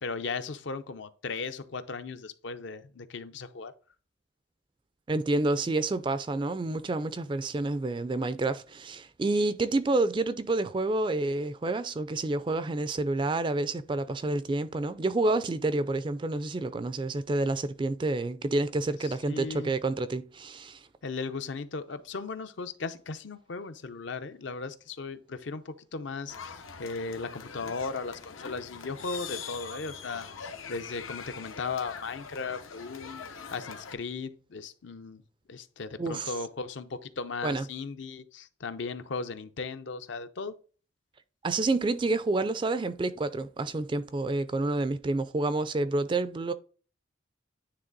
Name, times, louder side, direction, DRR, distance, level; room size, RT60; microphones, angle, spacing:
voice 1, 0.0-3.7 19.0-19.7 21.0-35.2 35.5-40.6, left 4 dB, 65° left, 0.6 m, -37 dB
voice 2, 5.1-20.8 36.0-36.3 37.4-37.7 41.4-46.5, right 2 dB, 25° right, 0.3 m, -29 dB
sound 1, 26.3-33.9, left 6 dB, 85° left, 0.9 m, -43 dB
9.6 x 3.3 x 3.8 m
head